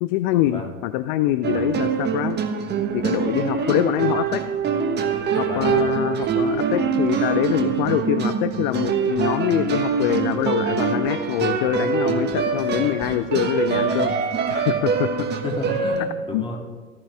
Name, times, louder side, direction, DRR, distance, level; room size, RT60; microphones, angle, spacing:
voice 1, 0.0-2.4 2.9-4.4 5.4-14.1 14.5-15.1 16.3-16.4, left 14 dB, 40° left, 13 dB, 0.5 m, -24 dB
sound 1, 1.4-16.0, right 6 dB, 25° right, 1.3 m, -24 dB
voice 2, 5.4-6.0 15.3-16.6, left 2 dB, 15° left, 0 dB, 2.7 m, -32 dB
14.0 x 14.0 x 3.6 m, 1.5 s
figure-of-eight pair, 95°, 40 cm